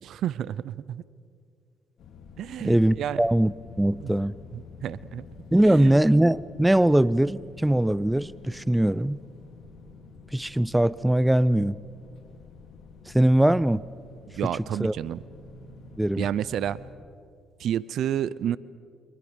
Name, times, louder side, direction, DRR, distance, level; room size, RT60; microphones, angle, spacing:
voice 1, 0.0-1.0 2.4-3.2 4.0-4.1 4.5-5.3 5.6-6.0 14.3-15.2 16.2-16.8 17.6-18.6, right 10 dB, 70° right, 20 dB, 0.6 m, -30 dB
sound 1, 2.0-16.9, left 4 dB, 70° left, 3.3 m, -48 dB
voice 2, 2.6-4.3 5.5-9.2 10.3-11.8 13.1-13.8 14.8-14.9 16.0-16.3, right 1 dB, 10° right, 21 dB, 0.5 m, -21 dB
30.0 x 25.0 x 5.2 m, 2.3 s
supercardioid pair, 65°, 0 cm